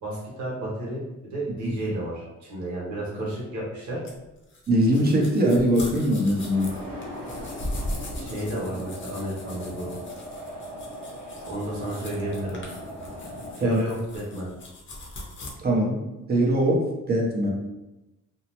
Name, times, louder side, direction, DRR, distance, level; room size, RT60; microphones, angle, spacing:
voice 1, 0.0-4.0 8.1-10.0 11.4-12.6 13.6-14.5, right 1 dB, 70° right, -5 dB, 1.1 m, -32 dB
sound 1, 4.0-15.5, left 1 dB, 40° left, 0.7 m, -39 dB
voice 2, 4.7-6.7 13.6-13.8 15.6-16.0 16.3-17.5, right 1 dB, 30° right, -2 dB, 0.7 m, -22 dB
sound 2, 6.3-13.5, equal, 90° right, 1.0 m, -39 dB
2.7 x 2.0 x 2.9 m, 0.98 s
cardioid pair, 90°, 30 cm